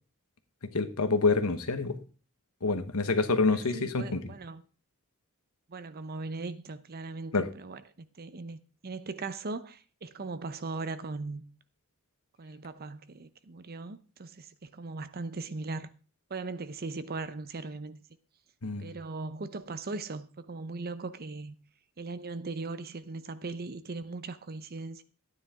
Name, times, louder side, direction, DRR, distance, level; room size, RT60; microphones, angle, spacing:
voice 1, 0.7-1.9 2.6-4.2 7.3-7.5 18.6-18.9, left 3 dB, 85° left, 1.1 m, -27 dB
voice 2, 3.5-4.6 5.7-11.4 12.4-15.9 16.3-18.0 18.8-21.5 22.0-25.0, right 3 dB, 45° right, 0.7 m, -39 dB
11.5 x 9.7 x 3.6 m
head